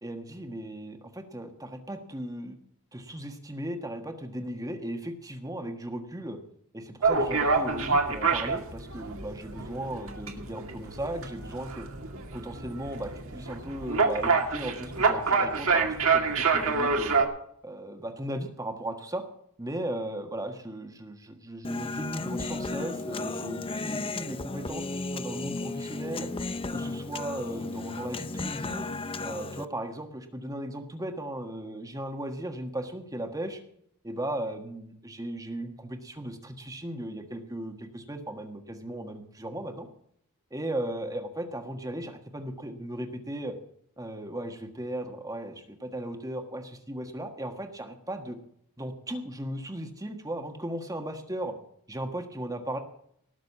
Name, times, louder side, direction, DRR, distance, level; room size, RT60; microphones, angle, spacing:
voice 1, 0.0-2.6 2.9-6.4 6.7-11.9 12.3-17.1 17.6-19.2 19.6-26.3 26.7-28.9 29.2-33.6 34.0-39.9 40.5-43.5 44.0-48.4 48.8-51.6 51.9-52.8, right 1 dB, 15° right, 5 dB, 1.5 m, -36 dB
sound 1, 7.0-17.3, right 4 dB, 65° right, 2.2 m, -27 dB
Human voice, 21.6-29.7, left 3 dB, 25° left, 0.6 m, -34 dB
19.0 x 6.5 x 7.3 m, 0.69 s
head